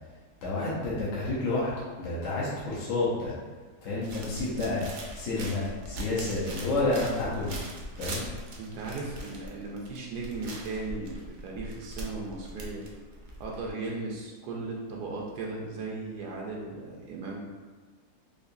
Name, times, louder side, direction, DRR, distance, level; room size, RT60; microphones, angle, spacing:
voice 1, 0.4-3.3 3.8-4.8 5.1-7.6 8.0-8.2, left 2 dB, 65° left, -8 dB, 1.0 m, -30 dB
sound 1, 4.0-13.7, right 1 dB, 65° right, 0.7 m, -42 dB
voice 2, 8.6-11.1 11.4-12.9 13.4-17.4, right 3 dB, 80° right, -2 dB, 1.1 m, -36 dB
3.8 x 2.6 x 2.5 m, 1.4 s
omnidirectional pair, 1.7 m